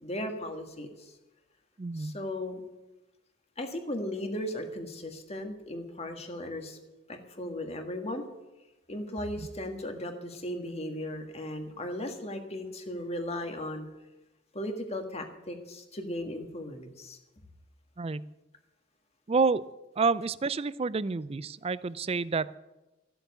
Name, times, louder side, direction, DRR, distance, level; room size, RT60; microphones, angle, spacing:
voice 1, 0.0-1.1 1.9-2.6 3.6-6.8 7.1-8.3 8.9-13.9 14.5-17.2, left 1 dB, 30° left, 5 dB, 1.7 m, -36 dB
voice 2, 1.8-2.2 18.0-18.3 19.3-19.6 20.0-22.6, right 4 dB, 30° right, 17 dB, 0.4 m, -29 dB
14.0 x 7.9 x 8.3 m, 1.0 s
head